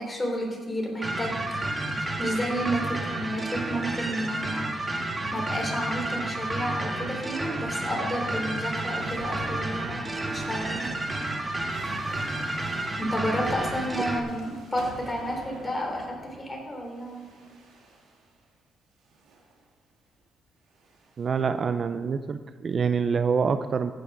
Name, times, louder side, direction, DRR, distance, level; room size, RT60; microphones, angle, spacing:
voice 1, 0.0-1.6 2.2-4.7 5.3-10.9 13.0-17.2, equal, 20° left, 0 dB, 3.6 m, -31 dB
sound 1, 1.0-14.2, right 2 dB, 20° right, 1.5 m, -31 dB
sound 2, 9.0-18.4 19.0-19.6 20.7-21.4, right 2 dB, 80° right, 2.8 m, -46 dB
voice 2, 21.2-23.9, right 6 dB, 45° right, 10 dB, 0.5 m, -26 dB
16.0 x 6.6 x 6.1 m, 1.5 s
cardioid pair, 90°, 0 cm